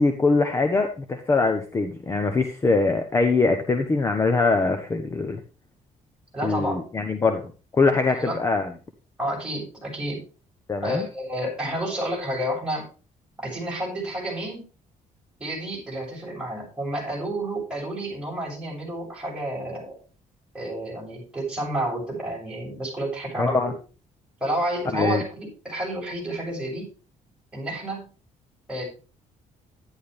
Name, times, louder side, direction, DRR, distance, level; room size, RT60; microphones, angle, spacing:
voice 1, 0.0-5.4 6.4-8.7 10.7-11.1 23.4-23.7 24.9-25.2, left 3 dB, 20° left, 6 dB, 1.0 m, -23 dB
voice 2, 6.3-6.8 8.1-8.4 9.2-10.2 10.8-12.9 13.4-14.6 15.4-20.0 20.5-23.6 24.4-26.9 27.5-28.1 28.7-28.8, right 1 dB, 5° right, -3 dB, 7.4 m, -30 dB
11.5 x 11.0 x 3.4 m, 0.34 s
cardioid pair, 160°, 14 cm